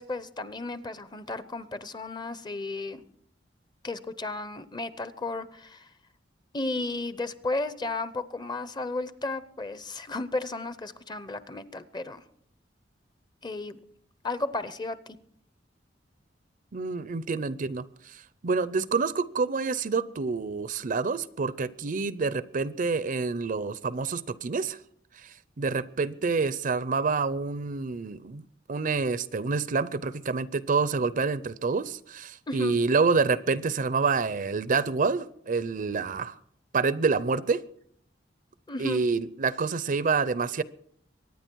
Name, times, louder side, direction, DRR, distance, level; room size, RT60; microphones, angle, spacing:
voice 1, 0.0-3.0 3.8-5.9 6.5-12.2 13.4-13.8 14.2-15.2 32.5-32.8 38.7-39.0, left 2 dB, 25° left, 14 dB, 0.7 m, -34 dB
voice 2, 16.7-24.8 25.2-36.4 36.7-37.6 38.8-40.6, right 4 dB, 45° right, 17 dB, 0.5 m, -27 dB
24.0 x 9.6 x 4.6 m, 0.64 s
head